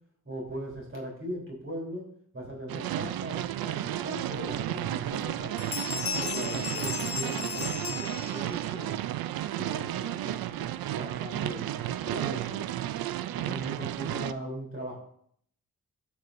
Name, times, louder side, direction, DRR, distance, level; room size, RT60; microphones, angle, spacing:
voice 1, 0.3-2.0 2.3-5.8 6.1-9.0 9.6-12.7 13.3-15.0, equal, 35° right, -2 dB, 3.6 m, -39 dB
sound 1, 2.7-14.3, right 12 dB, 80° right, 0.5 m, -33 dB
Bell, 4.5-4.6 5.1-5.3 5.6-8.7, left 7 dB, 40° left, 0.6 m, -35 dB
10.5 x 7.2 x 2.6 m, 0.64 s
cardioid pair, 60°, 36 cm